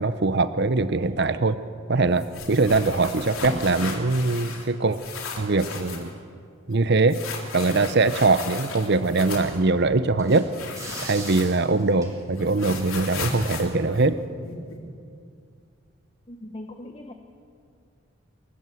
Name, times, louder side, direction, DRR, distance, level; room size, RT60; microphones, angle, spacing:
voice 1, 0.0-1.6 1.9-5.0 5.4-6.1 6.7-7.2 7.5-10.5 11.0-14.2, right 3 dB, 50° right, 13 dB, 0.8 m, -22 dB
sound 1, 2.2-4.7 4.9-6.1 7.1-9.6 10.5-11.8 12.1-14.8, left 4 dB, 85° left, 3.3 m, -35 dB
sound 2, 7.0-12.6, right 2 dB, 15° right, 3.9 m, -44 dB
voice 2, 16.3-17.1, left 1 dB, 25° left, 5 dB, 1.1 m, -39 dB
30.0 x 14.0 x 7.8 m, 2.4 s
head